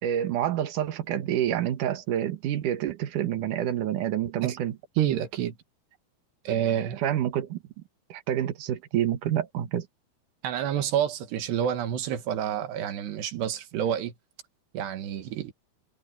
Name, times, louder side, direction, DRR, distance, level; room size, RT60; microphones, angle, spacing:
voice 1, 0.0-4.8 7.0-7.6 8.1-9.9, right 11 dB, 60° right, 2.5 m, -28 dB
voice 2, 5.0-5.5 6.5-7.0 10.4-14.1 14.7-15.5, right 10 dB, 90° right, 3.9 m, -28 dB
omnidirectional pair, 4.7 m